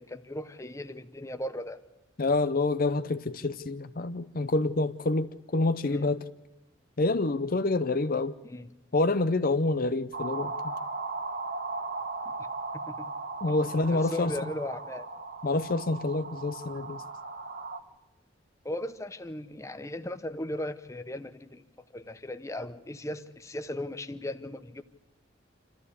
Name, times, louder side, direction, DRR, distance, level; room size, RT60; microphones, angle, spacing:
voice 1, 0.0-1.8 5.8-6.1 8.4-8.7 12.3-12.4 12.7-13.1 13.5-13.6 13.9-15.1 18.6-21.6 21.9-24.8, left 1 dB, 15° left, 0.8 m, -37 dB
voice 2, 2.2-6.2 7.0-8.3 8.9-10.7 13.4-14.3 15.4-17.0, left 2 dB, 50° left, 0.7 m, -27 dB
sound 1, 10.1-17.8, right 3 dB, 55° right, 1.5 m, -37 dB
27.5 x 14.0 x 8.4 m
head